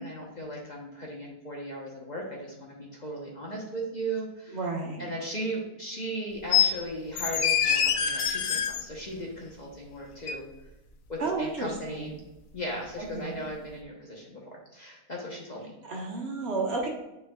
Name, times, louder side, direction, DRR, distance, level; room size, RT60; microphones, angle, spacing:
voice 1, 0.0-4.6 5.0-10.4 11.1-12.1 12.5-15.7, right 1 dB, 35° left, -2 dB, 1.0 m, -37 dB
voice 2, 4.5-5.1 11.2-12.2 13.0-13.4 15.8-16.9, right 3 dB, 55° right, -1 dB, 1.4 m, -32 dB
sound 1, 6.5-6.7 7.2-8.8 10.3-10.4, left 8 dB, 85° left, 1.0 m, -24 dB
9.2 x 4.6 x 2.3 m, 0.96 s
omnidirectional pair, 1.4 m